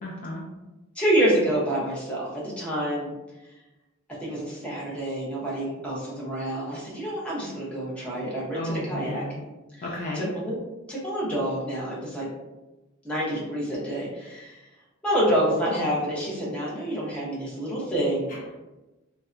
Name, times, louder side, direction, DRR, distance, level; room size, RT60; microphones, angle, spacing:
voice 1, 0.0-0.4 8.5-9.4 9.8-10.3 18.3-18.5, left 1 dB, 40° left, -3 dB, 0.3 m, -33 dB
voice 2, 1.0-3.1 4.2-9.2 10.1-10.6 10.9-12.3 13.0-14.6 15.0-18.3, right 1 dB, 5° left, -6 dB, 0.7 m, -27 dB
2.6 x 2.1 x 2.4 m, 1.1 s
head